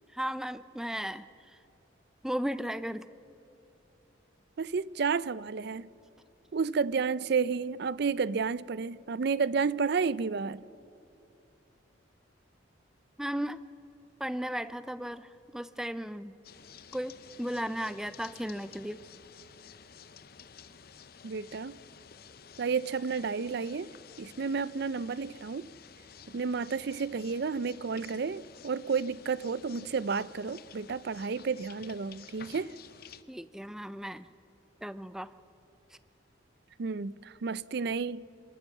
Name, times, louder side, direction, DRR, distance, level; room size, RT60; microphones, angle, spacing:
voice 1, 0.1-1.6 2.2-3.1 13.2-13.6 14.2-16.3 16.9-19.0 33.3-34.3 34.8-35.3, equal, 5° right, 0.5 m, -35 dB
voice 2, 4.6-5.9 6.5-10.6 21.2-21.8 22.6-23.9 24.2-25.7 26.3-32.8 36.8-38.2, right 5 dB, 55° right, 0.4 m, -31 dB
sound 1, 16.4-33.2, left 7 dB, 50° left, 0.8 m, -52 dB
26.5 x 14.0 x 7.3 m
head